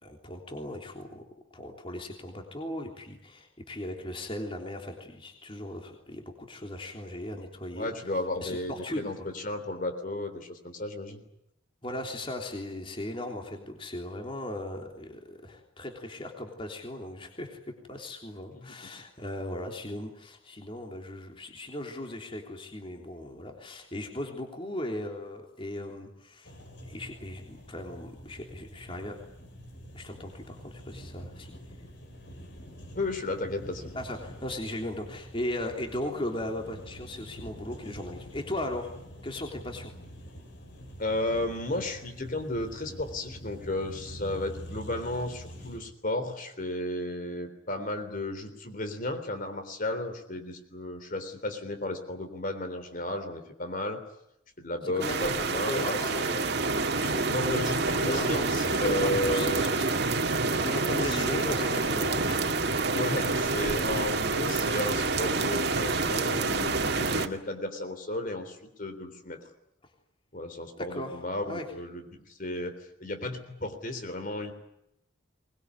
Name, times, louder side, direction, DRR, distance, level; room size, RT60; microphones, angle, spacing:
voice 1, 0.0-1.3 1.5-7.9 8.4-9.3 11.8-17.6 17.9-26.5 26.9-29.2 29.9-31.5 33.9-38.9 39.2-39.9 55.0-56.2 56.8-57.3 57.6-59.9 60.6-63.0 70.8-71.2 71.5-71.6, left 1 dB, 25° left, 3 dB, 3.4 m, -37 dB
voice 2, 7.7-11.2 18.5-18.8 33.0-33.9 41.0-54.0 54.6-56.5 57.3-59.7 61.1-61.8 62.9-69.4 70.3-72.7 73.0-74.5, left 1 dB, 45° left, 7 dB, 3.5 m, -33 dB
sound 1, 26.4-45.8, equal, 60° left, 6.8 m, -46 dB
sound 2, 55.0-67.3, right 3 dB, 55° right, 2.1 m, -28 dB
23.5 x 21.0 x 9.7 m, 0.82 s
head